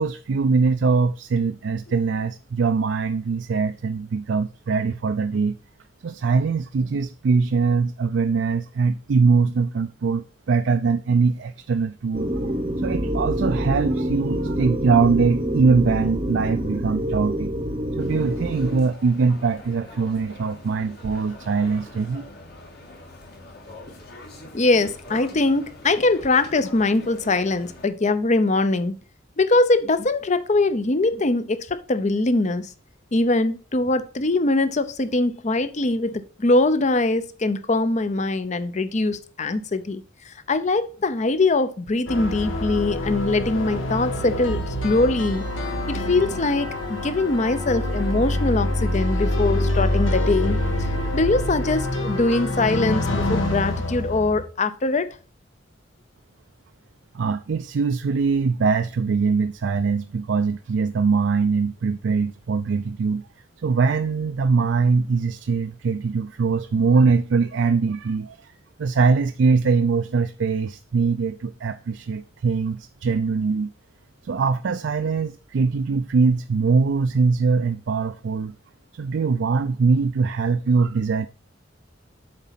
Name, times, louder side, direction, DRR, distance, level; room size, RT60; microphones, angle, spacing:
voice 1, 0.0-5.6 6.0-12.3 12.8-17.5 18.0-22.3 57.1-63.3 63.6-68.5 68.8-73.7 74.2-78.6 78.9-81.3, right 4 dB, 65° right, 0.4 m, -22 dB
sound 1, 12.1-18.8, equal, 30° right, 0.8 m, -26 dB
sound 2, 18.0-27.9, left 2 dB, 55° left, 1.9 m, -43 dB
voice 2, 24.5-28.9 29.4-32.7 33.1-45.4 45.9-50.9 51.1-55.1, left 2 dB, 35° left, 0.6 m, -22 dB
sound 3, 42.1-54.4, left 1 dB, 80° left, 1.4 m, -26 dB
7.6 x 4.1 x 5.8 m
head